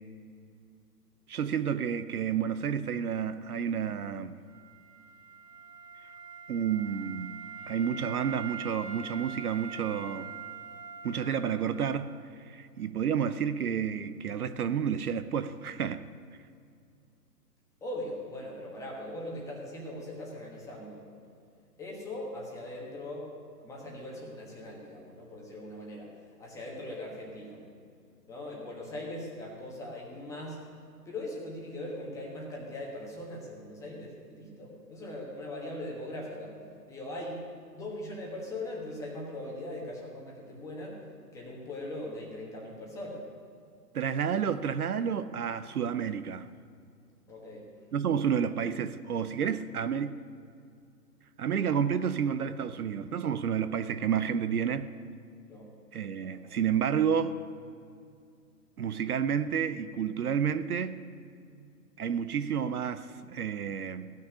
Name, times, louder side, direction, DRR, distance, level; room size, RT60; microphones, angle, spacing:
voice 1, 1.3-4.4 6.5-7.4 7.7-10.3 11.0-12.1 12.5-16.0 43.9-46.5 47.9-50.2 51.4-54.9 55.9-57.4 58.8-61.0 62.0-64.1, right 7 dB, 65° right, 12 dB, 0.7 m, -30 dB
Wind instrument woodwind instrument, 4.5-12.2, right 7 dB, 85° right, 2.6 m, -44 dB
voice 2, 17.8-21.1 21.8-23.3 23.6-27.6 28.3-30.7 31.0-36.6 36.9-37.4 37.7-41.0 41.3-43.3 47.3-47.9 55.5-55.7 56.2-56.6, left 1 dB, 5° left, -2 dB, 1.3 m, -40 dB
15.5 x 6.5 x 9.8 m, 2.4 s
hypercardioid pair, 155°, 49 cm